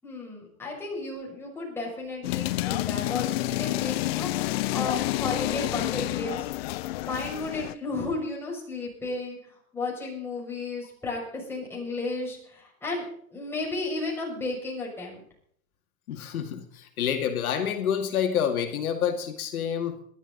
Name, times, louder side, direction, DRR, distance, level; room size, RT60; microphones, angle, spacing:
voice 1, 0.0-6.5 7.0-13.0 13.3-15.2, left 3 dB, 5° left, -3 dB, 6.6 m, -33 dB
sound 1, 2.2-7.7, left 17 dB, 45° left, 0.5 m, -29 dB
voice 2, 16.1-20.0, left 8 dB, 80° left, 4 dB, 2.3 m, -28 dB
21.5 x 12.0 x 4.0 m, 0.63 s
hypercardioid pair, 140°, 43 cm